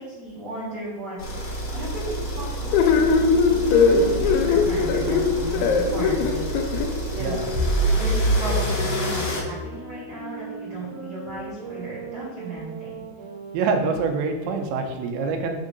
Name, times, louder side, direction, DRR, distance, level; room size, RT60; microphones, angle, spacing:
voice 1, 0.0-3.3 3.6-6.6 7.1-7.4 7.9-13.0, right 1 dB, 50° right, -11 dB, 2.3 m, -35 dB
sound 1, 1.2-9.4, right 1 dB, 40° left, 1.2 m, -27 dB
sound 2, 2.5-8.0 8.6-14.0, right 2 dB, 70° right, 2.5 m, -38 dB
sound 3, 2.7-6.9, left 5 dB, 90° left, 3.0 m, -20 dB
voice 2, 7.2-7.5 13.5-15.6, right 4 dB, 85° right, 4 dB, 3.0 m, -25 dB
6.6 x 3.6 x 5.2 m, 1.3 s
omnidirectional pair, 5.1 m